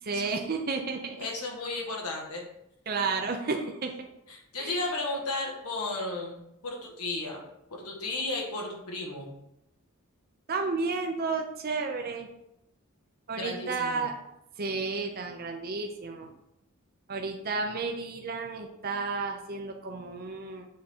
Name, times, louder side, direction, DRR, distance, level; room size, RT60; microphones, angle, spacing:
voice 1, 0.0-1.2 2.9-3.9 4.6-4.8 10.5-12.3 13.3-14.1 14.6-16.3 17.1-20.7, right 4 dB, 40° right, 3 dB, 0.6 m, -32 dB
voice 2, 1.2-2.4 4.3-7.4 7.7-9.3 13.4-14.1, left 2 dB, 90° left, 0 dB, 1.7 m, -34 dB
7.4 x 3.7 x 4.4 m, 0.82 s
head